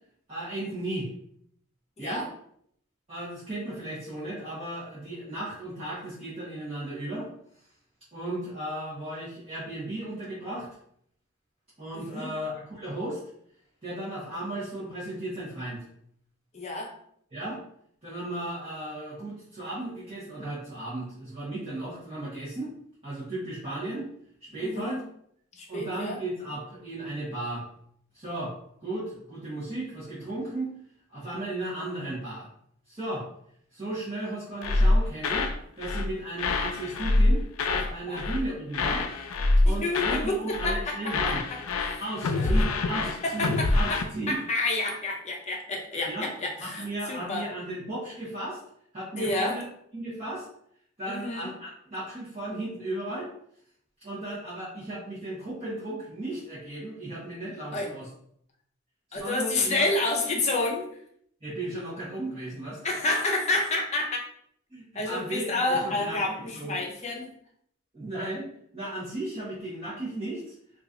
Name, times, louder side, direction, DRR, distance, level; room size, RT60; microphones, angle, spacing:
voice 1, 0.3-1.1 2.0-2.3 3.1-7.3 8.1-10.7 11.8-13.2 13.8-15.8 17.3-17.6 18.0-22.7 23.0-24.1 24.5-25.0 25.7-27.6 28.1-28.5 28.8-30.7 31.1-32.5 32.9-33.3 33.7-35.5 35.8-39.0 39.6-41.4 42.0-44.4 46.1-46.3 46.6-48.6 48.9-49.6 49.9-50.5 51.0-53.3 54.0-58.1 59.1-59.9 61.4-62.8 64.7-66.2 66.5-66.8 67.9-68.5 68.7-70.5, right 1 dB, 30° right, -11 dB, 1.1 m, -35 dB
voice 2, 11.9-12.3 16.5-16.9 24.6-25.0 25.5-26.2 38.1-38.2 39.7-41.3 41.8-42.0 42.4-42.6 43.2-47.5 49.2-49.6 51.1-51.5 57.7-57.9 59.1-60.9 62.8-64.2 64.9-67.3, left 2 dB, 30° left, 0 dB, 0.6 m, -29 dB
sound 1, 34.6-35.6 35.8-36.1 36.4-37.9 38.2-38.5 38.7-40.3 40.5-40.8 41.1-44.0, left 2 dB, 85° left, 0.4 m, -25 dB
3.0 x 2.5 x 3.7 m, 0.68 s
head